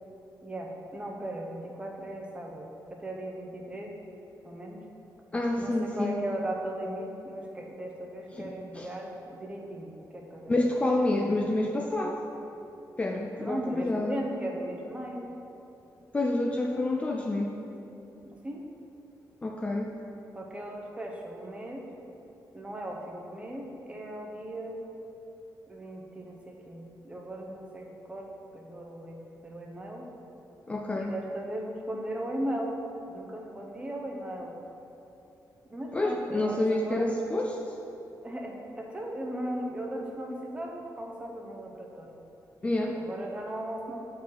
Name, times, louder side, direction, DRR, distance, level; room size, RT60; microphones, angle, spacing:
voice 1, 0.4-3.9 4.4-4.8 5.6-10.6 13.4-15.3 18.3-18.6 20.3-21.8 22.5-24.8 25.7-28.3 28.5-29.2 29.4-30.1 30.9-32.8 33.1-34.6 35.7-37.2 38.2-42.2 42.9-44.0, right 1 dB, 15° right, 0 dB, 0.8 m, -37 dB
voice 2, 5.3-6.2 8.3-8.9 10.5-12.2 13.0-14.2 16.1-17.6 19.4-19.9 30.7-31.1 35.9-37.8 42.6-43.0, left 2 dB, 15° left, 1 dB, 0.4 m, -28 dB
9.0 x 4.6 x 4.7 m, 3.0 s
wide cardioid pair, 165°, 7 cm